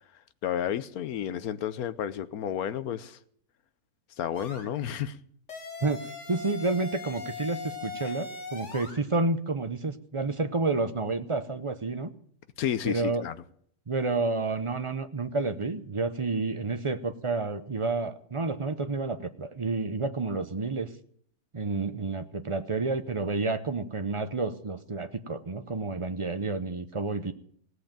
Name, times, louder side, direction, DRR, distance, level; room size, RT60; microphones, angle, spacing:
voice 1, 0.4-3.2 4.2-5.2 8.0-8.1 12.6-13.3, left 10 dB, 75° left, 1.3 m, -31 dB
sound 1, 4.3-4.7 5.5-9.0, left 3 dB, 50° left, 2.5 m, -39 dB
voice 2, 6.3-12.1 12.8-13.2 13.9-20.9 21.5-27.3, right 3 dB, 35° right, 0.5 m, -30 dB
17.5 x 8.1 x 8.9 m
omnidirectional pair, 1.6 m